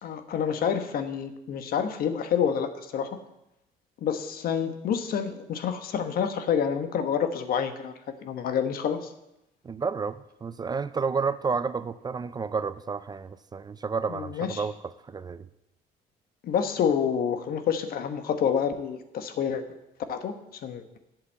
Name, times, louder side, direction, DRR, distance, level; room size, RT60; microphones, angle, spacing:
voice 1, 0.0-3.1 4.0-7.9 8.2-9.1 14.1-14.6 16.4-19.6 20.1-20.3 20.6-21.0, left 7 dB, 60° left, 9 dB, 1.2 m, -28 dB
voice 2, 9.6-14.7 15.1-15.5, right 5 dB, 25° right, 14 dB, 0.4 m, -30 dB
8.2 x 8.1 x 7.4 m, 0.88 s
cardioid pair, 110°, 17 cm